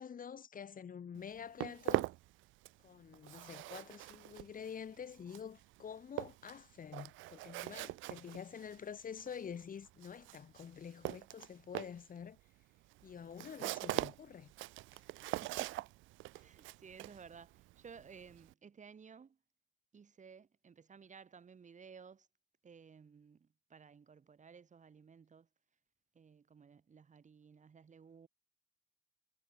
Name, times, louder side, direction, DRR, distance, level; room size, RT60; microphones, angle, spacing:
voice 1, 0.0-2.1 2.8-12.4 13.0-14.5, left 7 dB, 45° left, 4.3 m, -48 dB
Walk footsteps, 1.2-2.9 3.1-18.5, right 18 dB, 85° right, 5.2 m, -42 dB
voice 2, 15.4-15.9 16.4-19.4 19.9-22.3 22.6-25.5 26.1-28.3, right 6 dB, 40° right, 6.6 m, -56 dB
cardioid pair, 85°, 20 cm